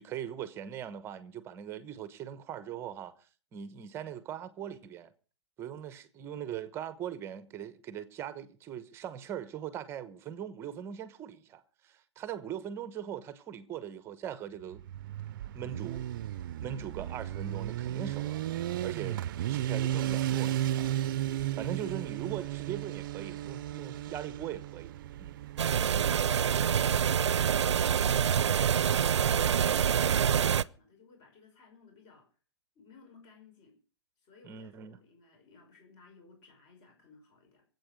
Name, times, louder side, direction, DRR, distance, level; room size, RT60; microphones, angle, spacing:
voice 1, 0.0-3.1 3.5-5.1 5.6-14.8 15.5-16.0 16.6-18.4 18.8-19.2 19.5-21.0 21.6-24.9 25.2-25.4 34.4-35.0, right 9 dB, 15° right, 1.0 m, -40 dB
Motorcycle, 14.7-26.4, right 12 dB, 50° right, 0.6 m, -34 dB
sound 1, 25.6-30.6, right 8 dB, 90° right, 0.6 m, -26 dB
voice 2, 25.7-32.3 32.8-33.8 34.2-37.6, left 4 dB, 30° left, 5.6 m, -58 dB
23.5 x 8.3 x 5.2 m
hypercardioid pair, 155°, 14 cm